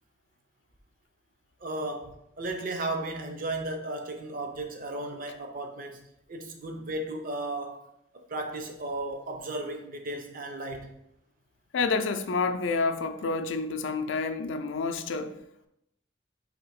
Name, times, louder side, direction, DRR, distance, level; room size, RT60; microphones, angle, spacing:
voice 1, 1.6-7.8 8.3-11.0, right 2 dB, 50° right, 0.6 m, -35 dB
voice 2, 11.7-15.3, left 4 dB, 85° left, 0.4 m, -29 dB
3.8 x 2.8 x 4.7 m
head